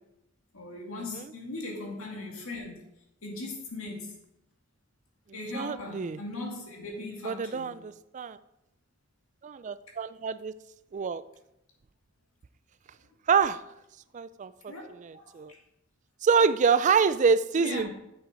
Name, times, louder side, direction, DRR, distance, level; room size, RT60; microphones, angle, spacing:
voice 1, 0.5-2.8 3.2-4.1 5.3-7.7 14.7-14.8 15.1-15.6 17.6-17.9, left 2 dB, 85° left, 0 dB, 2.3 m, -38 dB
voice 2, 5.5-6.2 7.2-8.4 9.4-10.5 10.9-11.2 13.3-13.6 14.1-15.5 16.2-17.9, right 5 dB, 35° right, 15 dB, 0.3 m, -26 dB
8.0 x 6.6 x 4.4 m, 0.86 s
head